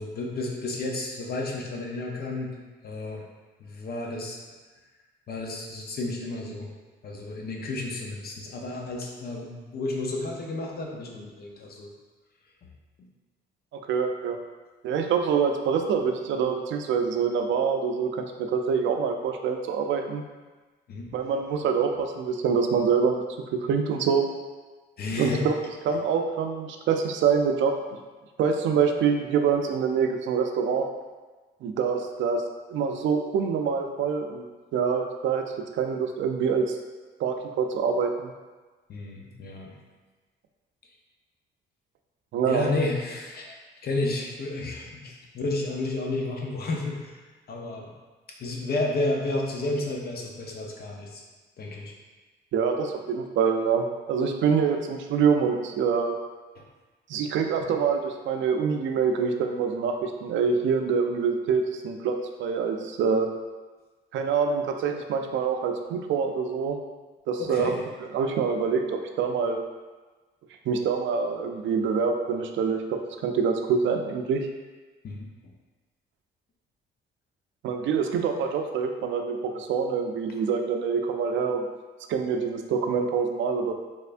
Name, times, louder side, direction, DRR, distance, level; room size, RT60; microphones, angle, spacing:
voice 1, 0.0-2.5 2.8-3.3 3.6-4.4 5.3-6.7 7.0-11.9 20.9-21.1 25.0-25.4 38.9-39.7 42.5-43.6 43.8-47.2 47.5-47.9 48.4-51.2 51.6-52.0 56.6-56.7 57.6-57.7 67.4-67.8 75.0-75.3, left 2 dB, 50° left, 0 dB, 0.7 m, -31 dB
voice 2, 13.7-14.4 14.8-20.2 21.1-23.2 23.7-24.3 25.1-25.5 25.9-27.7 28.4-30.9 31.6-32.4 32.7-34.4 34.7-36.8 37.2-38.3 42.3-42.7 52.5-56.2 57.1-63.3 64.1-66.8 67.3-67.7 68.1-69.6 70.7-74.5 77.6-81.6 82.1-83.7, right 6 dB, 70° right, 5 dB, 0.4 m, -25 dB
3.5 x 3.2 x 2.5 m, 1.3 s
cardioid pair, 90°, 20 cm